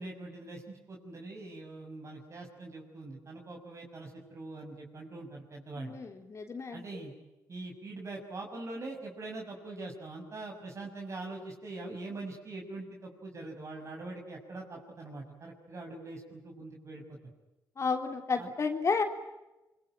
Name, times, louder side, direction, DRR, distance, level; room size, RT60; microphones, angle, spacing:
voice 1, 0.0-6.0 6.7-7.1 7.5-17.2 18.4-18.5, right 2 dB, 45° right, 0 dB, 6.3 m, -43 dB
voice 2, 5.8-6.8 17.8-19.0, left 5 dB, 45° left, 5 dB, 3.4 m, -31 dB
25.0 x 24.0 x 9.1 m, 1.0 s
cardioid pair, 75°, 7 cm